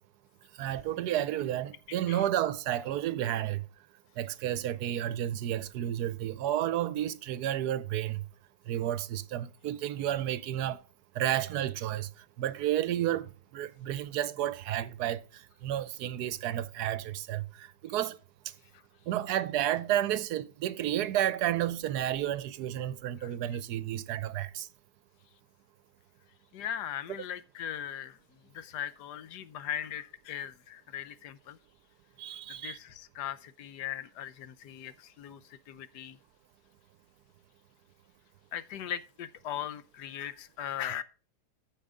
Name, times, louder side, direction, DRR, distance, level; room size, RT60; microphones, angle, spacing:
voice 1, 0.6-3.6 4.2-8.2 8.7-10.8 11.1-12.1 12.4-15.2 15.6-18.2 19.1-24.7 32.2-32.8, right 12 dB, 75° right, 1.1 m, -31 dB
voice 2, 26.5-28.2 28.5-31.6 32.5-36.2 38.5-41.0, left 10 dB, 85° left, 1.3 m, -39 dB
14.0 x 5.2 x 3.6 m
omnidirectional pair, 1.8 m